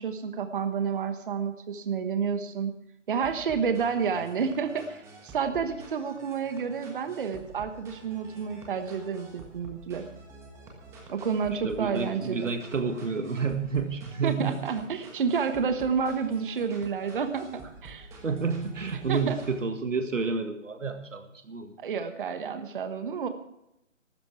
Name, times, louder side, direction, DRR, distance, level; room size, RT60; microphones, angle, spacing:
voice 1, 0.0-2.7 3.1-10.0 11.1-12.5 14.2-18.1 19.1-19.4 21.8-23.3, right 6 dB, 40° right, 9 dB, 1.2 m, -30 dB
sound 1, 3.2-19.6, right 2 dB, 5° right, 1.4 m, -49 dB
voice 2, 11.6-14.6 18.2-21.7, right 5 dB, 75° right, 7 dB, 1.8 m, -30 dB
15.0 x 12.5 x 4.7 m, 0.83 s
figure-of-eight pair, 155°, 38 cm